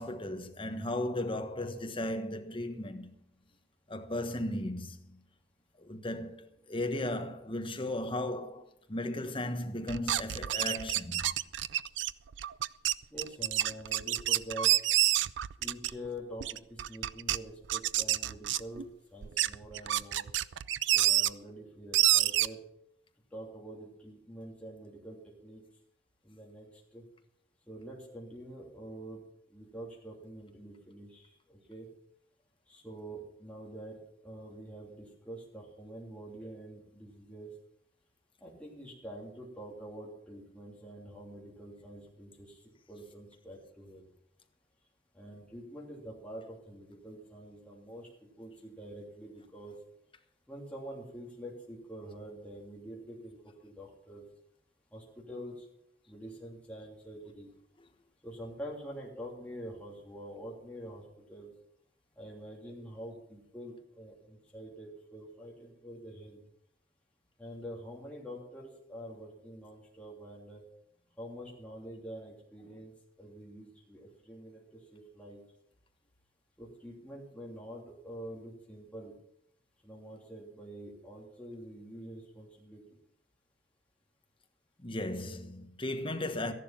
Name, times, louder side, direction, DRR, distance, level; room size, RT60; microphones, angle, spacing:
voice 1, 0.0-3.1 3.9-5.2 5.8-11.2 84.8-86.5, left 1 dB, 30° left, 1.3 m, -36 dB
sound 1, 9.9-16.1 16.4-17.4 17.7-18.8 19.2-21.3 21.9-22.5, right 13 dB, 75° right, 0.4 m, -28 dB
voice 2, 13.1-14.7 15.6-18.8 19.1-20.3 20.9-22.6 23.3-25.6 26.2-26.7 26.9-27.0 27.7-29.2 29.5-31.9 32.7-34.0 34.2-37.5 38.4-42.6 42.9-44.1 45.1-48.1 48.4-49.8 50.5-54.3 54.9-55.7 56.1-57.5 58.2-61.5 62.2-66.4 67.4-70.6 71.2-72.9 73.2-74.6 74.9-75.4 76.6-79.1 79.8-83.0, equal, 5° left, 3.0 m, -46 dB
13.5 x 11.0 x 5.8 m
head